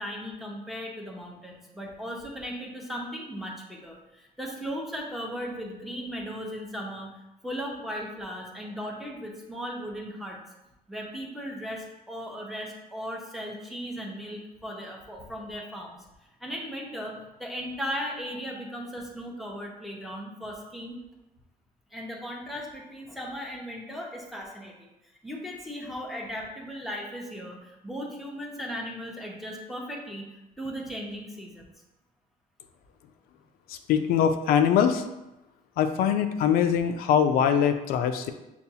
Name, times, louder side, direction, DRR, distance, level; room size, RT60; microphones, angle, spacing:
voice 1, 0.0-7.2 7.4-10.4 10.9-16.0 16.4-21.0 21.9-24.9 25.2-30.3 30.6-31.7, equal, ahead, -2 dB, 0.5 m, -37 dB
voice 2, 33.7-35.0 35.8-38.3, left 8 dB, 90° left, 8 dB, 0.4 m, -23 dB
6.8 x 2.3 x 2.7 m, 0.94 s
cardioid pair, 170°, 15 cm